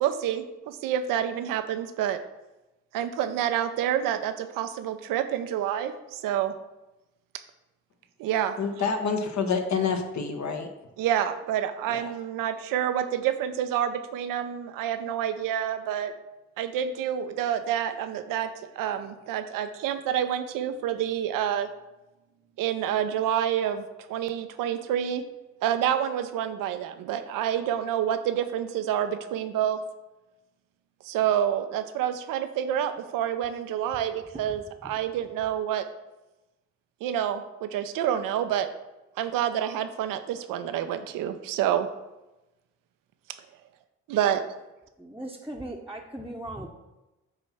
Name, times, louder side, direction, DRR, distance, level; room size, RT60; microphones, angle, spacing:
voice 1, 0.0-2.2 2.9-6.5 8.2-8.6 11.0-16.1 16.6-18.5 18.8-21.7 22.6-25.2 25.6-29.8 31.0-35.8 37.0-38.7 39.2-41.9 44.1-44.5, right 10 dB, 80° right, 9 dB, 0.6 m, -28 dB
voice 2, 8.6-10.7 11.9-12.0, left 5 dB, 55° left, 5 dB, 1.1 m, -27 dB
voice 3, 45.0-46.7, right 1 dB, 5° right, -2 dB, 0.9 m, -38 dB
7.8 x 3.0 x 5.8 m, 1.0 s
hypercardioid pair, 45°, 32 cm